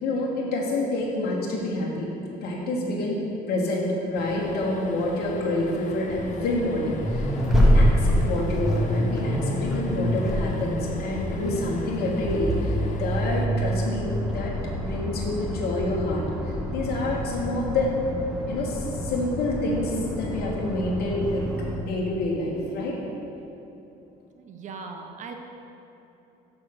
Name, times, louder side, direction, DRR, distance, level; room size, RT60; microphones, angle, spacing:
voice 1, 0.0-2.1 2.4-3.2 3.5-18.0 18.5-21.4 21.8-23.0, left 2 dB, 70° left, -3 dB, 1.3 m, -28 dB
sound 1, 4.1-13.5, left 5 dB, 50° left, 0.5 m, -40 dB
Accelerating revving vroom, 6.1-21.8, equal, 5° right, 0.9 m, -27 dB
voice 2, 24.4-25.3, right 4 dB, 45° right, 4 dB, 0.8 m, -39 dB
6.2 x 5.0 x 5.8 m, 3.0 s
cardioid pair, 110°, 17 cm